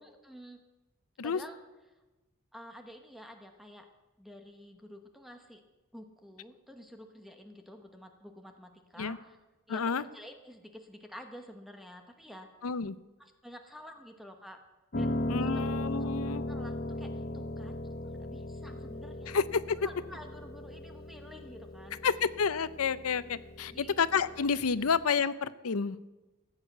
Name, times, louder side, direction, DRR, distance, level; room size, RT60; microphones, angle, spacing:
voice 1, 0.0-0.6 1.2-1.6 2.5-3.9 4.2-5.6 5.9-9.4 9.7-12.5 13.2-14.6 14.9-15.7 16.0-16.1 16.5-17.8 18.0-19.3 19.8-22.0 23.7-24.0, equal, ahead, 5 dB, 1.0 m, -50 dB
voice 2, 9.7-10.0 12.6-13.0 15.3-16.4 19.3-19.8 22.0-26.0, left 5 dB, 80° left, 16 dB, 0.6 m, -30 dB
Piano, 14.9-25.0, left 1 dB, 45° left, 0.8 m, -37 dB
14.5 x 8.2 x 7.9 m, 1.1 s
head